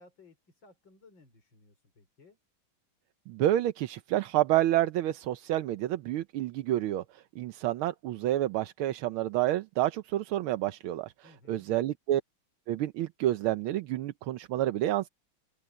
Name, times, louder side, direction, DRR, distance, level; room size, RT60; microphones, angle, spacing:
voice 1, 0.0-2.4 11.2-11.7, left 3 dB, 60° left, 5.9 m, -59 dB
voice 2, 3.3-12.2 12.7-15.1, right 13 dB, 85° right, 1.6 m, -29 dB
open air
omnidirectional pair, 2.3 m